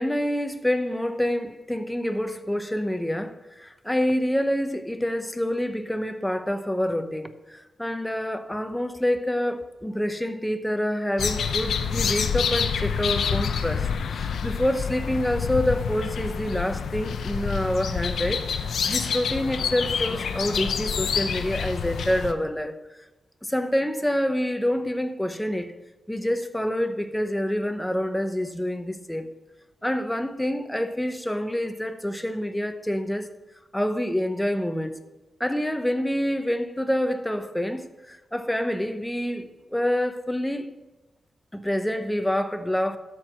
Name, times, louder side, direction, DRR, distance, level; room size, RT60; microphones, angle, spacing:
voice 1, 0.0-22.8 23.4-25.7 26.1-29.3 29.8-33.3 33.7-35.0 35.4-40.7 41.5-43.0, equal, 5° left, 0.8 m, -27 dB
sound 1, 11.2-22.3, left 6 dB, 90° left, 0.6 m, -27 dB
13.0 x 4.7 x 6.0 m
cardioid pair, 85°, 0 cm